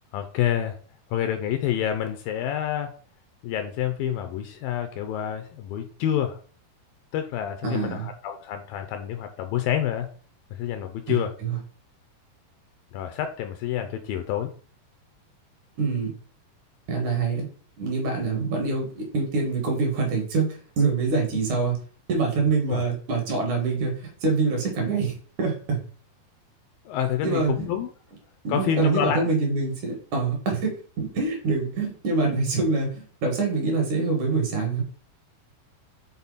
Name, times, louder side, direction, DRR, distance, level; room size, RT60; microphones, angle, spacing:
voice 1, 0.1-0.8 1.1-2.9 3.4-6.4 7.1-10.1 10.6-11.3 12.9-14.5 22.7-22.9 26.9-27.9 28.5-29.3, left 10 dB, 80° left, 7 dB, 2.2 m, -28 dB
voice 2, 7.6-8.1 11.1-11.6 15.8-16.1 16.9-17.5 17.8-21.8 22.1-25.8 27.2-27.7 28.4-34.8, right 4 dB, 55° right, 0 dB, 3.0 m, -25 dB
7.1 x 4.2 x 4.1 m, 0.43 s
omnidirectional pair, 4.5 m